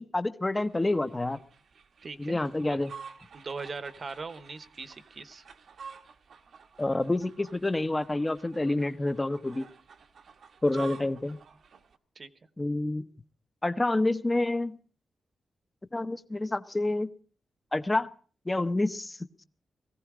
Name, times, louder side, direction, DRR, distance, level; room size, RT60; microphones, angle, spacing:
voice 1, 0.0-1.4 2.2-2.9 6.8-9.7 10.6-11.4 12.6-13.1 13.6-14.8 15.9-17.1 17.7-18.1 18.5-19.2, left 2 dB, 20° left, 12 dB, 0.8 m, -28 dB
sound 1, 0.5-12.0, right 6 dB, 70° right, 1.3 m, -50 dB
voice 2, 2.0-2.4 2.7-2.8 3.3-5.4 10.8-10.9 12.1-12.3, right 4 dB, 50° right, 13 dB, 1.1 m, -40 dB
18.5 x 15.5 x 4.9 m, 0.42 s
cardioid pair, 95°, 0 cm